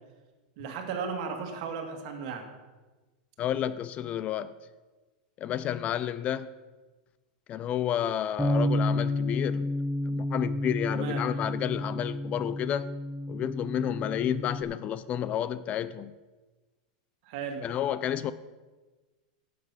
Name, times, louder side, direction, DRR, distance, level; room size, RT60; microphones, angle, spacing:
voice 1, 0.6-2.4 10.9-11.3 17.3-17.7, right 5 dB, 60° right, 2.1 m, -35 dB
voice 2, 3.4-4.5 5.4-6.5 7.5-9.7 10.1-12.9 13.3-16.1 17.6-18.3, left 10 dB, 35° left, 0.4 m, -30 dB
Bass guitar, 8.4-14.6, left 1 dB, ahead, 1.4 m, -30 dB
11.0 x 7.6 x 5.8 m
supercardioid pair, 125°, 4 cm